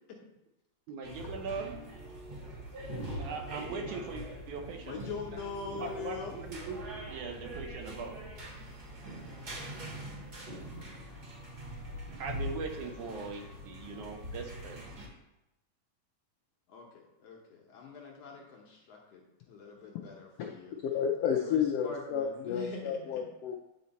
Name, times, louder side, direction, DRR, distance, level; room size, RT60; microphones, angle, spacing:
voice 1, 0.9-1.9 3.2-5.1 5.7-8.2 12.2-14.9, right 4 dB, 75° right, 3 dB, 2.2 m, -40 dB
sound 1, 1.0-15.1, equal, 40° right, 1.5 m, -43 dB
voice 2, 4.8-6.3 11.1-11.7 12.1-12.2 16.7-20.7 21.4-23.2, left 5 dB, 65° left, -1 dB, 1.7 m, -44 dB
voice 3, 20.9-23.5, left 8 dB, 90° left, 2 dB, 1.3 m, -31 dB
9.5 x 4.4 x 4.1 m, 0.93 s
omnidirectional pair, 3.6 m